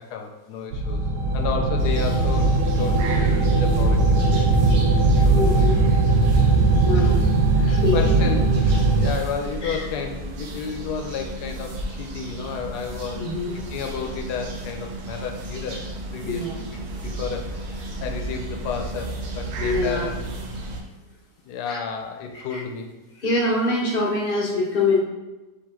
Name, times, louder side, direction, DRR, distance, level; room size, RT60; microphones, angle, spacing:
voice 1, 0.1-1.0 1.3-4.8 5.1-5.7 6.2-6.6 6.9-7.3 7.6-13.2 13.5-15.8 16.1-20.2 21.4-22.9, left 5 dB, 80° left, 3 dB, 1.1 m, -32 dB
sound 1, 0.7-9.1, right 3 dB, 90° right, 1.2 m, -19 dB
sound 2, 1.8-20.8, right 1 dB, 65° right, 1.0 m, -34 dB
voice 2, 5.3-5.8 6.8-7.2 7.7-8.3 9.6-9.9 13.2-13.5 16.2-16.5 19.6-20.1 21.7-21.8 22.5-22.6 23.2-25.0, left 2 dB, 50° left, -2 dB, 0.7 m, -24 dB
5.1 x 2.8 x 3.6 m, 1.1 s
omnidirectional pair, 1.7 m